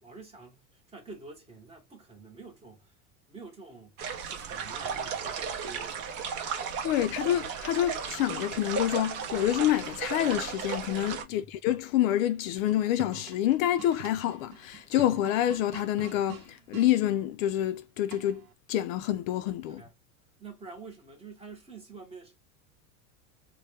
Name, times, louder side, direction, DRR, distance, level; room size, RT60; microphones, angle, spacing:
voice 1, 0.0-3.0 3.3-6.1 11.3-11.5 19.7-19.9 20.4-22.3, right 4 dB, 15° right, 1.0 m, -48 dB
sound 1, 4.0-11.2, right 6 dB, 40° right, 0.7 m, -35 dB
voice 2, 6.8-18.4 18.7-19.8, left 12 dB, 65° left, 0.5 m, -27 dB
sound 2, 12.6-16.9 18.1-18.5, right 9 dB, 70° right, 0.8 m, -46 dB
2.9 x 2.2 x 3.3 m
supercardioid pair, 150°, 44 cm